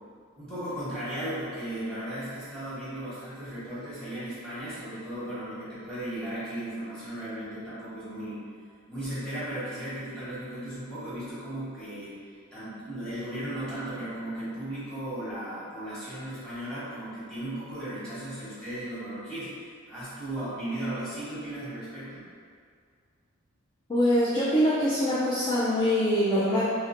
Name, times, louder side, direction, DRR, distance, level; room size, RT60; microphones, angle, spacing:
voice 1, 0.3-8.4 8.9-22.2, right 1 dB, 5° left, -13 dB, 1.2 m, -36 dB
voice 2, 23.9-26.7, equal, 20° left, -9 dB, 0.3 m, -24 dB
4.2 x 2.1 x 2.5 m, 2.1 s
head